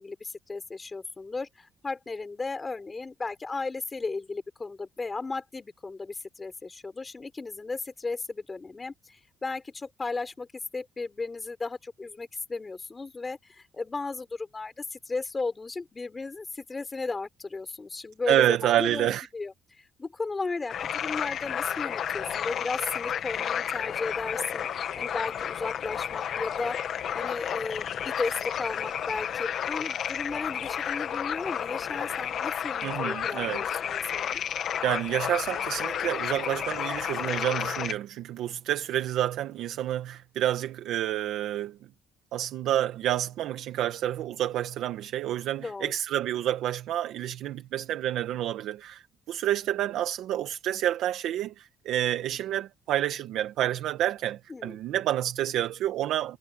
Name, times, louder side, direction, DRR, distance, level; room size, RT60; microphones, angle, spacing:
voice 1, 0.0-10.5 10.7-19.1 19.3-34.4 45.6-45.9 54.5-54.8, left 3 dB, 20° left, 4.3 m, -35 dB
voice 2, 18.3-19.3 32.8-33.6 34.8-41.8 42.3-56.4, right 12 dB, 70° right, 1.3 m, -29 dB
sound 1, 20.7-37.9, left 9 dB, 50° left, 1.2 m, -31 dB
cardioid pair, 135°, 0 cm